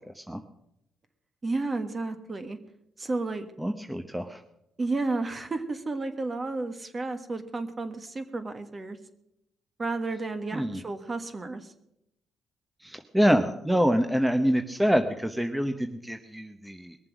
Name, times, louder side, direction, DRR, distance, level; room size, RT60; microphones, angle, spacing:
voice 1, 0.1-0.4 3.6-4.4 10.5-10.8 12.8-17.0, equal, 5° right, 7 dB, 0.9 m, -26 dB
voice 2, 1.4-2.6 3.0-3.5 4.8-9.0 9.8-11.7, right 3 dB, 30° right, 8 dB, 1.5 m, -32 dB
21.5 x 7.4 x 6.2 m, 0.81 s
cardioid pair, 90°, 0 cm